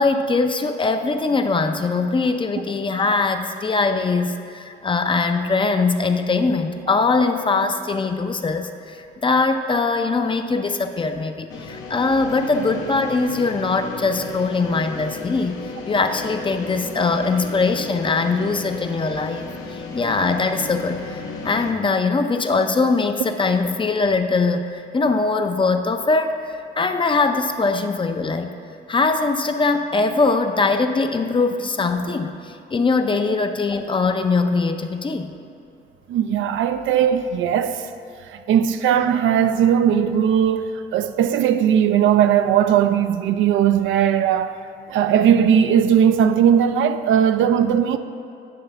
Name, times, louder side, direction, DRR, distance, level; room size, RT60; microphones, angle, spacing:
voice 1, 0.0-26.4 26.8-28.6 28.9-35.3, left 3 dB, 25° left, 0.5 m, -21 dB
sound 1, 11.5-21.7, left 3 dB, 75° left, 1.0 m, -34 dB
voice 2, 36.1-37.8 38.3-44.5 44.9-48.0, right 9 dB, 75° right, 0.4 m, -18 dB
9.2 x 3.4 x 6.6 m
cardioid pair, 90°, 20 cm